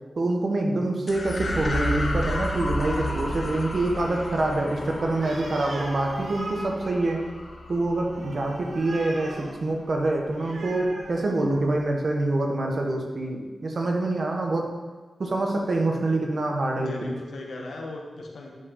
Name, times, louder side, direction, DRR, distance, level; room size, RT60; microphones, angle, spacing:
voice 1, 0.1-7.2 7.7-14.7 15.2-17.2, right 2 dB, 60° right, 1 dB, 1.3 m, -26 dB
sound 1, 1.1-9.7, left 1 dB, 55° left, 0.9 m, -32 dB
Animal, 5.1-11.9, right 2 dB, 80° right, 1.2 m, -40 dB
voice 2, 16.7-18.5, left 2 dB, 85° left, -1 dB, 1.4 m, -38 dB
11.0 x 4.8 x 3.9 m, 1.3 s
cardioid pair, 65°, 0 cm